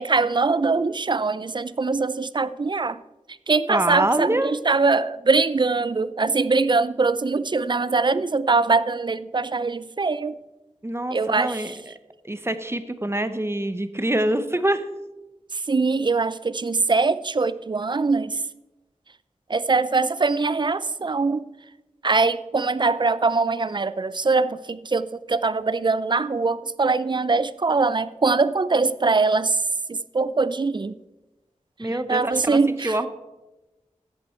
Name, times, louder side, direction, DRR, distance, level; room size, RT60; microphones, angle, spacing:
voice 1, 0.0-3.0 3.5-10.4 11.1-11.6 15.5-18.4 19.5-21.5 22.0-29.6 29.9-30.9 32.1-33.0, right 4 dB, 40° right, 16 dB, 0.4 m, -22 dB
voice 2, 3.7-4.5 10.8-11.9 12.2-14.8 31.8-33.1, right 1 dB, 20° right, 11 dB, 0.8 m, -25 dB
14.0 x 8.8 x 4.4 m, 1.1 s
wide cardioid pair, 70°, 12 cm